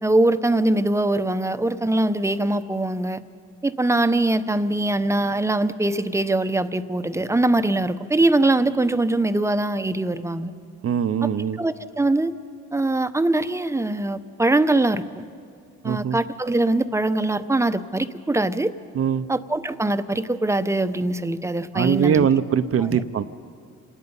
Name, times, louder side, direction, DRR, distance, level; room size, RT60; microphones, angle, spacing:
voice 1, 0.0-3.2 3.6-10.5 11.2-11.3 11.6-12.3 12.7-15.2 15.8-18.7 19.3-22.3 22.8-23.0, right 2 dB, 10° right, 12 dB, 0.8 m, -22 dB
voice 2, 10.8-11.6 15.8-16.2 18.9-19.3 21.7-23.2, right 8 dB, 50° right, 11 dB, 0.7 m, -21 dB
27.5 x 19.0 x 5.5 m, 2.2 s
cardioid pair, 90°, 30 cm